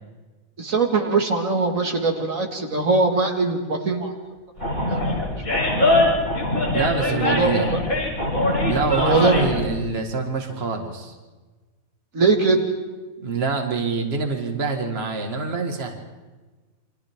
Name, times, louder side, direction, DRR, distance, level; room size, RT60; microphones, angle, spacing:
voice 1, 0.6-4.1 7.1-7.8 8.9-9.4 12.1-12.6, right 3 dB, 70° right, 2 dB, 2.3 m, -21 dB
Animal, 4.6-9.6, left 1 dB, 75° left, 7.0 m, -22 dB
voice 2, 6.7-7.7 8.6-11.1 13.2-16.0, right 4 dB, 45° right, 3 dB, 2.0 m, -25 dB
29.0 x 25.0 x 3.6 m, 1.3 s
omnidirectional pair, 1.5 m